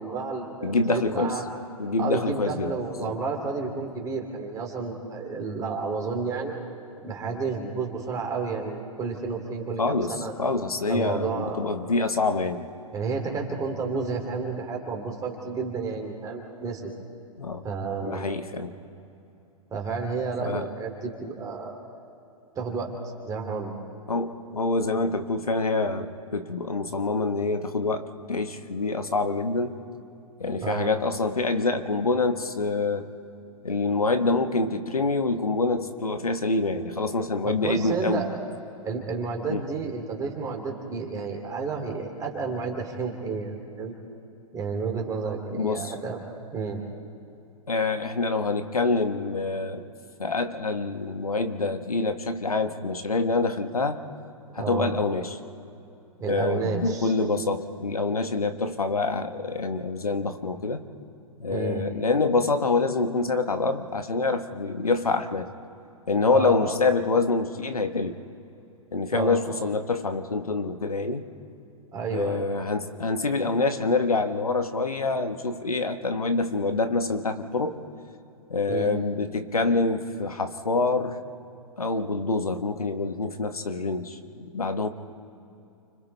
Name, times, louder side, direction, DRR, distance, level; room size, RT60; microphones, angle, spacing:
voice 1, 0.0-1.4 2.0-6.6 7.0-10.3 10.9-11.8 12.9-16.9 17.6-18.3 19.7-21.8 22.5-22.9 23.2-23.8 30.6-30.9 37.4-38.3 38.8-43.9 44.5-46.2 46.5-46.8 54.6-54.9 56.2-57.1 61.5-61.8 66.3-66.8 69.1-69.4 71.9-72.4 78.7-78.9, right 4 dB, 20° right, 1 dB, 2.9 m, -31 dB
voice 2, 0.6-1.4 1.8-2.7 3.0-3.1 9.8-12.6 17.4-17.6 18.0-18.7 20.4-20.7 24.1-29.8 30.4-33.1 33.6-38.2 39.5-39.6 45.5-45.9 47.7-49.8 50.2-54.0 54.5-55.4 56.3-60.8 61.4-65.5 66.1-68.2 68.9-71.2 72.1-77.8 78.5-81.2 81.8-84.9, left 3 dB, 85° left, 8 dB, 1.4 m, -26 dB
29.5 x 25.5 x 3.4 m, 2.8 s
figure-of-eight pair, 115°, 18 cm